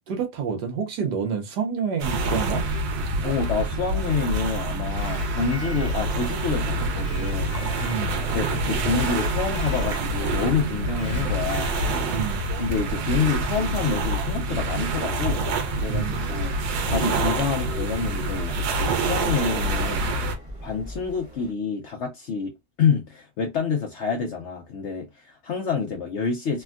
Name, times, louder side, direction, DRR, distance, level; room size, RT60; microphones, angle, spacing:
voice 1, 0.0-2.7 7.8-8.1 12.1-12.4 15.9-16.2, right 6 dB, 70° right, 1.2 m, -28 dB
sound 1, 2.0-20.3, right 2 dB, 90° right, 1.4 m, -26 dB
voice 2, 3.2-11.8 12.6-16.5 16.8-20.1 20.6-22.5 22.8-26.6, left 5 dB, 85° left, 0.6 m, -28 dB
Electric guitar, 4.8-6.4 7.0-8.4 9.0-10.3 11.0-12.2, left 2 dB, 50° left, 1.0 m, -43 dB
sound 2, 5.5-21.5, equal, 45° right, 0.4 m, -45 dB
3.4 x 2.2 x 2.3 m
omnidirectional pair, 1.9 m